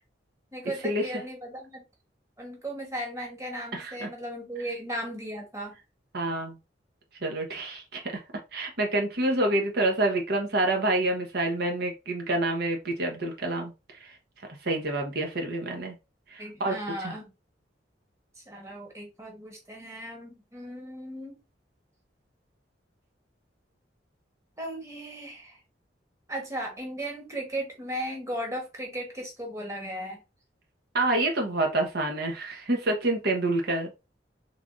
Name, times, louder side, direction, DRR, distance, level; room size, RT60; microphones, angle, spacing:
voice 1, 0.5-1.8 2.4-5.7 16.4-17.3 18.4-21.4 24.6-25.6 26.3-30.2, right 1 dB, 15° right, 0 dB, 1.2 m, -36 dB
voice 2, 3.7-4.1 6.1-6.6 7.2-8.1 8.5-13.7 14.0-14.2 14.6-15.9 16.3-16.7 17.0-17.1 30.9-33.9, right 2 dB, 60° right, 2 dB, 1.0 m, -27 dB
3.5 x 3.4 x 2.5 m, 0.27 s
head